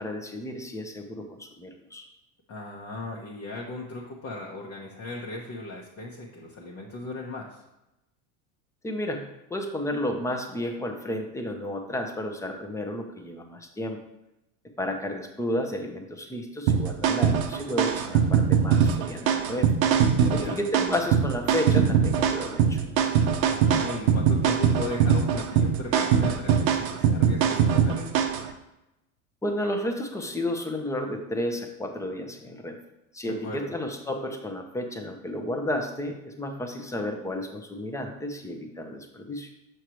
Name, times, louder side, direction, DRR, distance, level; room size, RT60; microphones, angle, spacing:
voice 1, 0.0-2.1 8.8-14.0 14.8-19.7 20.3-22.8 29.4-32.8 33.1-39.5, left 1 dB, 5° left, 4 dB, 0.7 m, -32 dB
voice 2, 2.5-7.6 20.2-20.6 23.4-28.1 33.2-33.7, left 2 dB, 35° left, -3 dB, 1.0 m, -37 dB
sound 1, 16.7-28.5, right 7 dB, 85° right, 0.9 m, -22 dB
6.5 x 6.2 x 3.0 m, 0.91 s
supercardioid pair, 120°, 42 cm